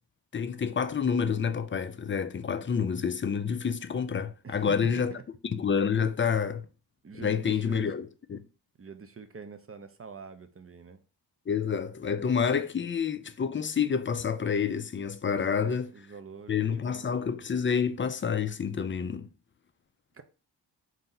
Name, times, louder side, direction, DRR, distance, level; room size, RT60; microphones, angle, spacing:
voice 1, 0.3-5.1 5.4-6.7 7.1-8.4 11.5-15.9 16.5-19.3, left 6 dB, 30° left, 0.3 m, -28 dB
voice 2, 4.4-5.2 7.0-8.0 8.8-11.0 15.5-17.1 20.1-20.2, right 5 dB, 30° right, 0.5 m, -45 dB
4.1 x 2.7 x 3.8 m
cardioid pair, 75°, 45 cm